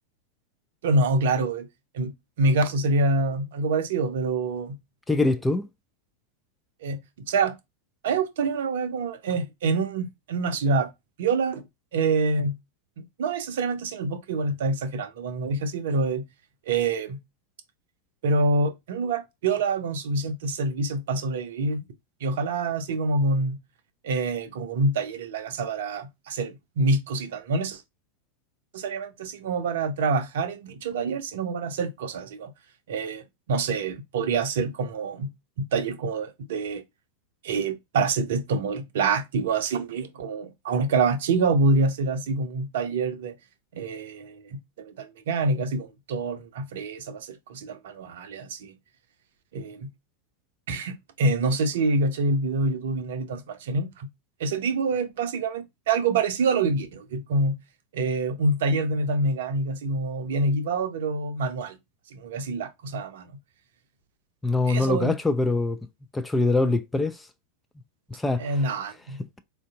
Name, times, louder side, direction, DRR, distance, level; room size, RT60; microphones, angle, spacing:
voice 1, 0.8-1.7 1.9-4.8 6.8-7.0 7.3-7.6 8.0-10.9 11.2-11.6 11.9-12.6 13.0-16.3 16.7-17.2 18.2-21.8 22.2-23.6 24.0-27.8 28.7-32.5 32.9-33.2 33.5-35.3 35.6-36.8 37.4-43.3 43.7-48.7 49.5-49.9 50.7-54.1 54.4-57.6 57.9-61.8 62.1-63.3 64.7-65.1 68.4-69.2, right 3 dB, 55° right, 0.6 m, -26 dB
voice 2, 5.1-5.7 64.4-65.8 66.1-67.2 68.1-68.4, left 2 dB, 10° left, 0.3 m, -23 dB
4.3 x 2.6 x 2.4 m
figure-of-eight pair, 90°, 0 cm